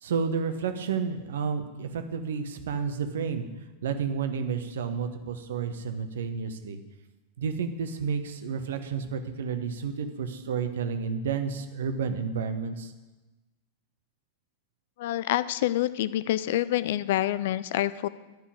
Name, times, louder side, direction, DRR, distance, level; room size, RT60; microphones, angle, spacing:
voice 1, 0.0-3.5 3.8-6.8 7.4-12.9, right 6 dB, 60° right, 8 dB, 1.0 m, -31 dB
voice 2, 15.0-18.1, left 13 dB, 55° left, 16 dB, 0.4 m, -27 dB
10.5 x 5.6 x 8.7 m, 1.1 s
figure-of-eight pair, 90°, 0 cm